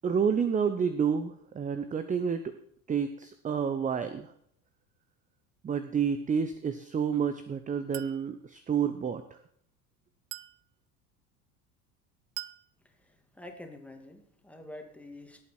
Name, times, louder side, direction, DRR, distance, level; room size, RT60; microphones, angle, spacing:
voice 1, 0.0-2.6 2.9-4.3 5.6-9.4, right 7 dB, 15° right, 11 dB, 0.7 m, -29 dB
Chink clink, 7.9-8.3 10.3-10.6 12.4-12.7, right 19 dB, 55° right, 0.6 m, -41 dB
voice 2, 12.8-15.4, left 1 dB, 5° left, 4 dB, 2.3 m, -47 dB
18.0 x 8.3 x 4.4 m, 0.68 s
figure-of-eight pair, 70°, 46 cm